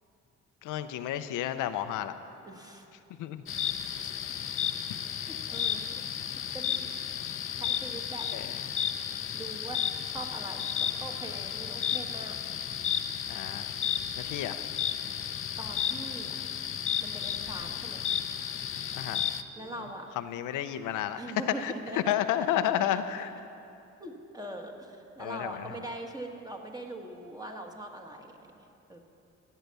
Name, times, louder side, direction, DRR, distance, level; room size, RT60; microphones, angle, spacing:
voice 1, 0.6-2.1 3.2-3.4 8.3-8.5 13.3-13.7 14.2-14.6 18.9-19.2 20.2-21.2 21.6-21.7 22.1-23.3 25.2-25.7, left 11 dB, 85° left, 9 dB, 0.7 m, -31 dB
voice 2, 2.4-2.9 4.0-4.1 5.3-6.1 6.5-6.9 7.5-8.3 9.3-12.4 15.6-16.4 17.0-18.0 19.5-20.1 21.2-22.3 22.9-23.3 24.0-28.5 28.9-29.0, right 1 dB, 10° right, 2 dB, 1.6 m, -42 dB
sound 1, 3.5-19.4, left 8 dB, 45° left, 0.6 m, -33 dB
15.0 x 9.1 x 6.8 m, 2.7 s
cardioid pair, 90°, 30 cm